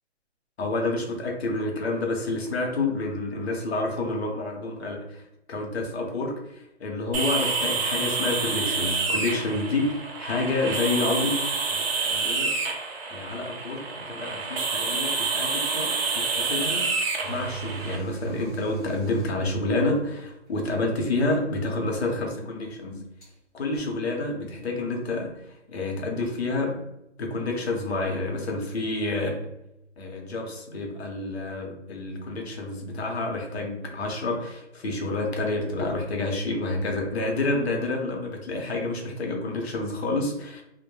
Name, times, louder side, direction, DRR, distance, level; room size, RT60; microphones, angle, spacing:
voice 1, 0.6-5.2 5.5-12.5 13.1-16.9 17.2-23.1 23.5-25.3 25.7-26.8 27.2-29.5 30.0-40.6, left 2 dB, 60° left, 2 dB, 0.7 m, -29 dB
sound 1, 7.1-18.0, right 4 dB, 55° right, 0.6 m, -28 dB
sound 2, 17.2-20.1 21.3-21.4 23.2-23.3 23.7-23.8, right 7 dB, 15° left, 1.0 m, -37 dB
2.1 x 2.1 x 3.0 m, 0.86 s
hypercardioid pair, 175°, 36 cm